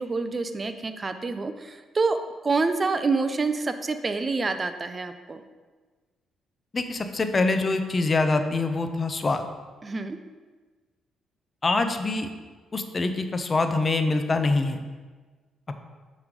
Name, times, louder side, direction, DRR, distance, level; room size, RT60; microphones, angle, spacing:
voice 1, 0.0-2.2 2.4-5.4 9.8-10.2, right 4 dB, 30° right, 9 dB, 0.5 m, -27 dB
voice 2, 6.7-9.4 11.6-12.3 12.7-14.8, left 3 dB, 30° left, 7 dB, 0.6 m, -24 dB
6.8 x 3.2 x 5.2 m, 1.4 s
cardioid pair, 90°, 0 cm